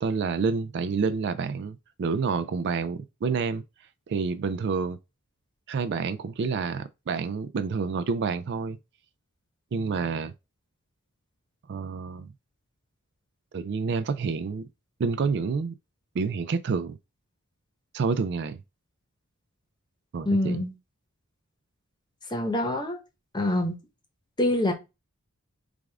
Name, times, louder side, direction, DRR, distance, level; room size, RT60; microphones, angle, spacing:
voice 1, 0.0-3.6 4.1-5.0 5.7-8.8 9.7-10.3 11.7-12.3 13.5-14.7 15.0-15.7 16.1-17.0 17.9-18.6 20.1-20.6, right 5 dB, 50° right, 0.3 m, -28 dB
voice 2, 20.2-20.7 22.3-23.0 23.3-23.8 24.4-24.7, left 1 dB, 20° left, 1.0 m, -25 dB
4.9 x 2.5 x 3.4 m
head